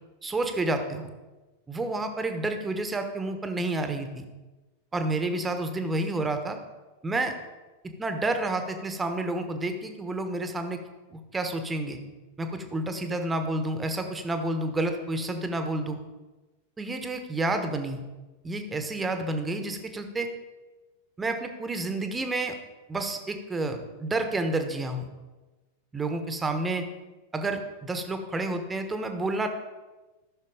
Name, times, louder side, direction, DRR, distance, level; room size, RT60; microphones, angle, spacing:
voice 1, 0.2-1.1 1.7-4.2 4.9-6.6 7.0-7.3 8.0-10.8 11.1-12.0 12.4-16.0 16.8-18.0 18.4-20.3 21.2-22.5 22.9-25.1 25.9-26.9 27.3-29.5, right 2 dB, 15° right, 7 dB, 1.3 m, -30 dB
14.0 x 6.4 x 5.0 m, 1.2 s
figure-of-eight pair, 90°, 0 cm